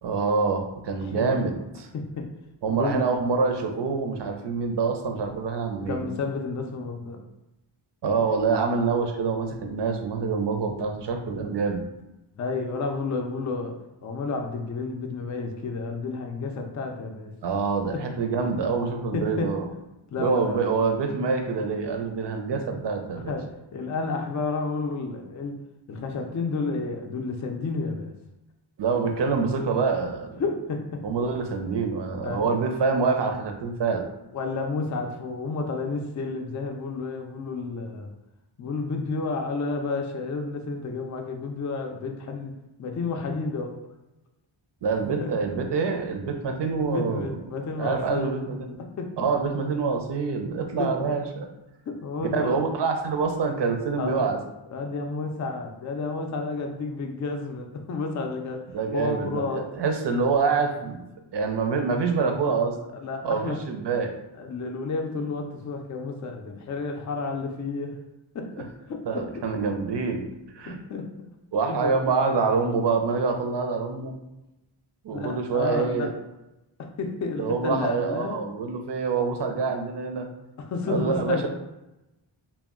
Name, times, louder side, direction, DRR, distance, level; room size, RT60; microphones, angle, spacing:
voice 1, 0.0-1.9 2.6-6.0 8.0-11.8 17.4-19.7 20.2-23.3 28.8-30.4 31.0-34.0 44.8-47.4 47.8-48.8 49.2-51.5 52.2-54.4 58.7-61.0 61.3-62.8 63.2-64.1 69.1-70.3 70.5-70.8 71.5-74.1 75.0-76.1 77.4-80.3 80.9-81.5, right 4 dB, 60° right, 4 dB, 0.5 m, -26 dB
voice 2, 1.9-2.3 2.7-3.1 5.9-7.2 12.4-17.3 17.9-18.0 19.1-19.5 20.1-20.6 23.3-25.6 25.9-28.1 30.4-31.1 32.2-32.5 34.3-38.1 38.6-42.5 42.8-43.8 45.2-45.3 46.8-48.4 48.8-49.2 50.8-51.1 51.9-52.7 54.0-54.2 54.7-59.7 62.9-63.6 64.4-68.0 68.3-69.4 70.7-71.1 71.7-72.0 75.1-76.1 76.8-78.4 80.6-81.5, left 4 dB, 40° left, 3 dB, 0.4 m, -31 dB
2.1 x 2.1 x 3.5 m, 0.96 s
cardioid pair, 60°, 48 cm